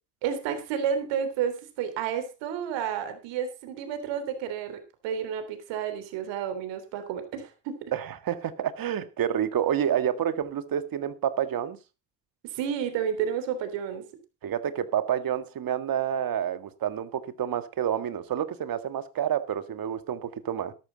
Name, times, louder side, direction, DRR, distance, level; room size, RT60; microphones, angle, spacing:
voice 1, 0.2-7.9 12.4-14.1, right 8 dB, 75° right, 3.3 m, -31 dB
voice 2, 7.9-11.8 14.4-20.7, right 9 dB, 50° right, 1.8 m, -29 dB
13.0 x 12.5 x 4.0 m
supercardioid pair, 80°, 44 cm